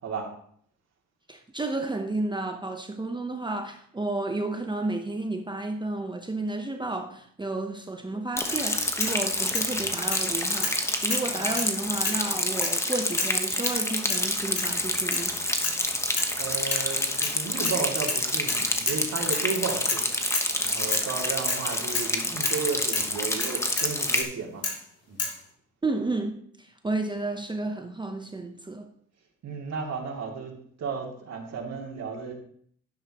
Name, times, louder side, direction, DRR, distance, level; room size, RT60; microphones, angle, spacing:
voice 1, 1.3-15.4 25.8-28.9, right 2 dB, 15° right, 0.9 m, -32 dB
sound 1, 8.4-8.6 9.0-9.7 10.1-10.3 10.6-10.8 11.1-11.7 12.0-12.3 12.6-12.8 13.2-13.4 13.6-13.8 14.1-14.3 14.6-14.7 15.1-15.3 15.6-15.8 16.2-16.4 16.7-17.4 17.6-17.8 18.1-19.0 19.3-19.5 19.9-20.1 20.3-20.5 20.9-21.1 21.5-21.6 21.9-22.1 22.4-22.6 22.9-23.1 23.4-24.3 24.6-24.8 25.2-25.4, left 4 dB, 50° left, 3.0 m, -31 dB
Rain, 8.4-24.2, left 1 dB, 10° left, 1.2 m, -28 dB
voice 2, 16.4-20.1 20.6-24.6 25.1-25.2 29.4-30.5 30.8-32.3, right 5 dB, 60° right, 2.7 m, -33 dB
11.5 x 9.5 x 3.0 m
cardioid pair, 90°, 30 cm